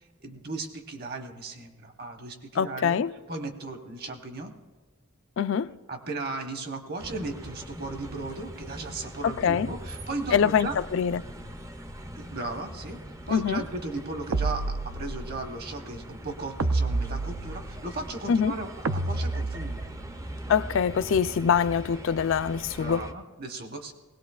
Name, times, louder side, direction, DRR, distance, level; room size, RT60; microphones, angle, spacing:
voice 1, 0.2-3.0 3.3-4.5 5.9-10.8 12.2-13.0 13.3-19.8 22.7-23.9, right 2 dB, 45° right, 1.1 m, -36 dB
voice 2, 2.6-3.1 5.4-5.7 9.4-9.7 10.3-11.2 13.3-13.6 18.3-18.5 20.5-23.1, left 7 dB, 60° left, 0.3 m, -24 dB
sound 1, 7.0-23.1, equal, 15° right, 0.5 m, -41 dB
sound 2, 14.3-15.4 16.6-17.9 18.8-20.1, right 2 dB, 75° right, 0.5 m, -29 dB
20.0 x 17.5 x 2.3 m
head